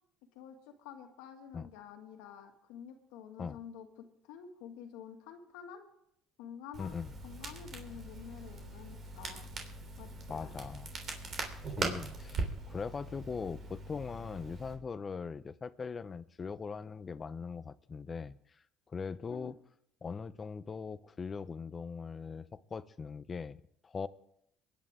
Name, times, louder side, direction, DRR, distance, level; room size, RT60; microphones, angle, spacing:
voice 1, 0.3-5.8 6.4-6.9 7.2-9.5 10.0-10.5 19.3-19.5, left 8 dB, 90° left, 5 dB, 2.0 m, -49 dB
Crackle, 6.7-14.7, right 3 dB, 45° right, 3.6 m, -41 dB
voice 2, 6.8-7.1 10.3-10.9 11.8-18.4 18.9-19.6 20.0-24.1, left 5 dB, 30° left, 15 dB, 0.7 m, -40 dB
23.0 x 10.5 x 3.7 m, 0.74 s
cardioid pair, 105°, 0 cm